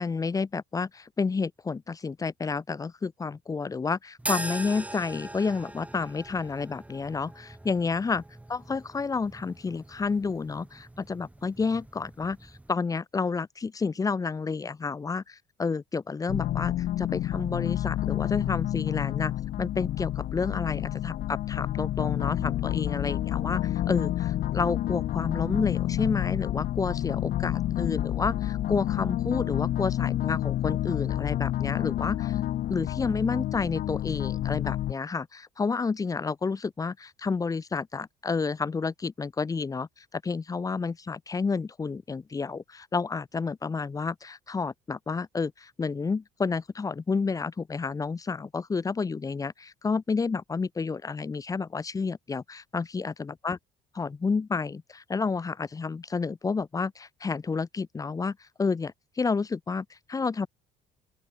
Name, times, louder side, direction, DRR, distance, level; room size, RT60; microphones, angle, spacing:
voice 1, 0.0-8.2 8.5-19.3 19.6-32.4 32.7-53.6 53.9-60.5, left 4 dB, 20° left, 0.6 m, -30 dB
sound 1, 4.2-12.7, right 1 dB, 10° right, 1.9 m, -41 dB
sound 2, 16.3-34.9, left 13 dB, 60° left, 0.8 m, -29 dB
open air
cardioid pair, 110°, 17 cm